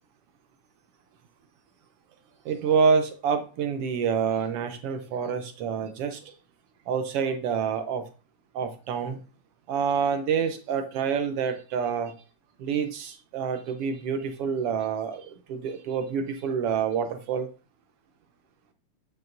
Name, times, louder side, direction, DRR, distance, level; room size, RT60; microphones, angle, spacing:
voice 1, 2.4-6.3 6.9-8.0 8.5-9.2 9.7-12.1 12.6-17.5, right 6 dB, 75° right, 8 dB, 1.4 m, -27 dB
8.7 x 6.3 x 2.6 m, 0.34 s
omnidirectional pair, 3.4 m